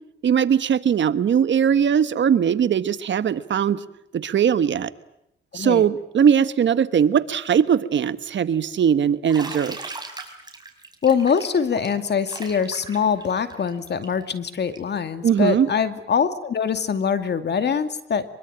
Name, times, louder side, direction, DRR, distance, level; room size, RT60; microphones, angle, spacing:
voice 1, 0.2-3.8 4.1-4.9 5.5-9.8 15.2-15.7, right 8 dB, 60° right, 13 dB, 1.3 m, -20 dB
voice 2, 5.5-5.8 11.0-18.2, left 6 dB, 55° left, 9 dB, 2.4 m, -23 dB
Bathtub (filling or washing), 9.3-15.0, right 3 dB, 20° right, 5.4 m, -38 dB
24.0 x 23.0 x 8.8 m, 0.81 s
cardioid pair, 85°, 21 cm